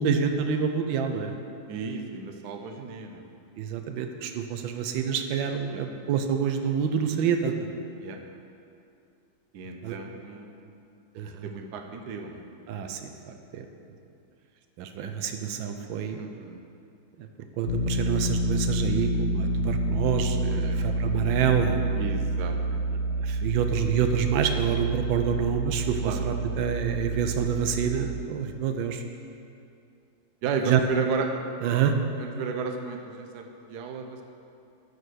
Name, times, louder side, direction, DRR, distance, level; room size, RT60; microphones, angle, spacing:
voice 1, 0.0-1.3 3.6-7.5 9.8-9.9 11.2-11.5 12.7-13.7 14.8-16.2 17.6-21.8 23.2-29.0 30.7-30.8 31.6-31.9, right 7 dB, 85° right, 6 dB, 1.4 m, -27 dB
voice 2, 1.7-3.2 5.7-5.8 8.0-8.2 9.5-10.8 11.4-12.4 16.2-16.6 20.5-20.8 22.0-22.8 26.0-26.2 30.4-31.3 32.2-34.2, right 5 dB, 65° right, 3 dB, 1.2 m, -33 dB
sound 1, 17.7-28.1, right 1 dB, 70° left, 0.6 m, -28 dB
10.0 x 5.0 x 6.3 m, 2.5 s
omnidirectional pair, 2.0 m